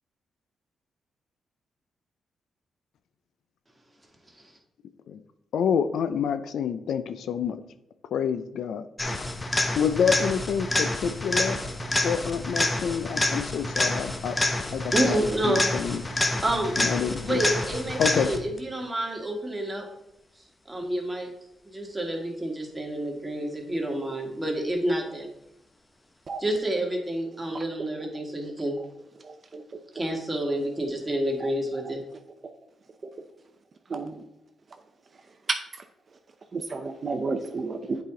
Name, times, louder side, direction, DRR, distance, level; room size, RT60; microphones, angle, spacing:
voice 1, 5.5-7.6 8.1-8.8 9.8-11.6 12.0-14.4 14.7-16.0 16.8-17.4 18.0-18.3, left 7 dB, 75° left, 11 dB, 0.4 m, -27 dB
sound 1, 9.0-18.6 26.6-26.7, left 1 dB, 25° left, 1.0 m, -28 dB
voice 2, 14.9-15.6 16.4-16.7 17.2-19.9 20.7-21.3 21.7-25.3 26.4-28.8 29.9-32.0, right 1 dB, 15° right, 0 dB, 2.0 m, -29 dB
voice 3, 29.2-29.6 31.4-31.5 33.9-34.1 35.5-35.6 36.5-38.0, right 4 dB, 50° right, 6 dB, 0.6 m, -31 dB
8.2 x 4.9 x 3.8 m, 0.84 s
cardioid pair, 60°, 0 cm